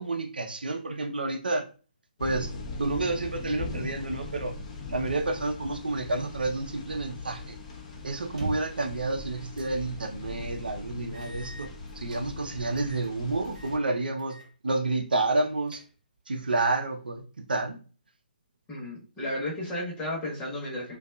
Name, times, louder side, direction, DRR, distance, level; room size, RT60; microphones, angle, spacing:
voice 1, 0.0-1.6 2.2-2.5 2.8-4.5 4.9-7.5 8.0-11.7 12.0-14.4 14.6-15.8 16.3-17.8, right 2 dB, 75° right, 4 dB, 0.5 m, -29 dB
sound 1, 2.2-13.8, left 3 dB, 45° left, 0.6 m, -40 dB
sound 2, 8.2-8.9 9.6-9.8 10.2-10.3 11.1-12.2 12.8-13.1 13.4-13.8 14.2-14.5 14.8-14.9 15.4-16.2, right 2 dB, 45° right, 1.0 m, -41 dB
voice 2, 18.7-21.0, left 1 dB, 15° left, -5 dB, 1.0 m, -33 dB
2.5 x 2.3 x 2.2 m, 0.37 s
figure-of-eight pair, 135°, 5 cm